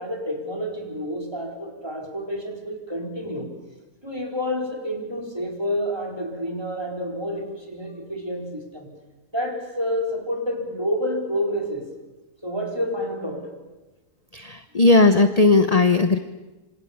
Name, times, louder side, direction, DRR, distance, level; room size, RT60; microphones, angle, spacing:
voice 1, 0.0-3.5 4.0-8.9 9.3-11.9 12.4-13.5, equal, 15° right, 2 dB, 4.3 m, -29 dB
voice 2, 14.3-16.2, left 3 dB, 30° left, 10 dB, 0.8 m, -17 dB
27.0 x 26.5 x 7.2 m, 1.1 s
omnidirectional pair, 1.7 m